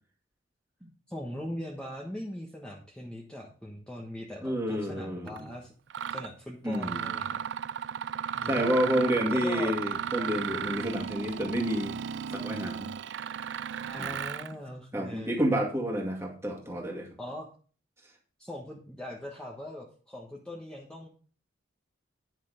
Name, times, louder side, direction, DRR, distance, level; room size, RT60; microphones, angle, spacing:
voice 1, 1.1-5.7 6.1-7.4 8.4-8.9 9.3-9.7 13.9-15.4 17.2-17.5 18.4-21.1, left 1 dB, 5° left, -3 dB, 1.3 m, -41 dB
voice 2, 4.4-5.5 6.6-7.1 8.4-11.9 12.3-12.9 14.0-14.1 14.9-17.1, equal, 15° right, 0 dB, 2.1 m, -29 dB
Mechanisms, 5.3-5.4 5.9-6.3 6.7-14.5, right 8 dB, 60° right, 0.4 m, -35 dB
10.0 x 6.6 x 5.0 m, 0.40 s
head